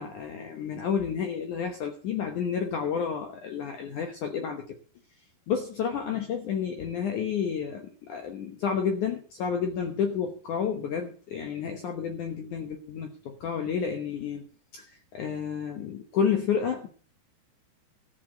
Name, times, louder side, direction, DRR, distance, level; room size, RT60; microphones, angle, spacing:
voice 1, 0.0-4.6 5.5-14.5 15.1-16.9, left 7 dB, 70° left, 5 dB, 1.9 m, -30 dB
14.0 x 5.9 x 7.8 m, 0.41 s
omnidirectional pair, 5.1 m